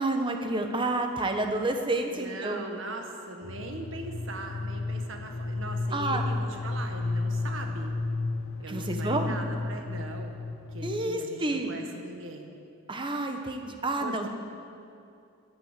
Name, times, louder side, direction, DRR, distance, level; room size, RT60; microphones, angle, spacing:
voice 1, 0.0-2.7 5.9-6.2 8.7-9.4 10.8-11.8 12.9-14.3, right 2 dB, 25° right, 4 dB, 1.1 m, -29 dB
voice 2, 2.1-7.9 8.6-10.4 10.7-12.5 14.0-14.3, right 2 dB, 65° right, 4 dB, 1.6 m, -40 dB
sound 1, 3.4-11.2, left 3 dB, 70° left, 0.7 m, -33 dB
15.0 x 9.7 x 7.6 m, 2.5 s
head